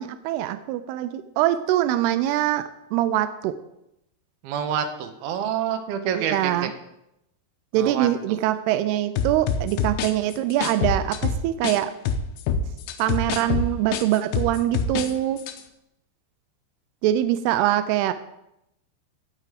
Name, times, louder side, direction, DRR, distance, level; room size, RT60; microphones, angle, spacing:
voice 1, 0.0-2.6 2.9-3.6 6.1-6.7 7.7-11.9 13.0-15.4 17.0-18.1, right 13 dB, 90° right, 11 dB, 2.3 m, -23 dB
voice 2, 4.4-6.7 7.7-8.1, right 8 dB, 70° right, 7 dB, 2.5 m, -27 dB
sound 1, 9.2-11.8 12.1-15.1 15.4-15.6, left 5 dB, 80° left, 2.9 m, -25 dB
16.0 x 6.2 x 5.0 m, 0.84 s
omnidirectional pair, 5.2 m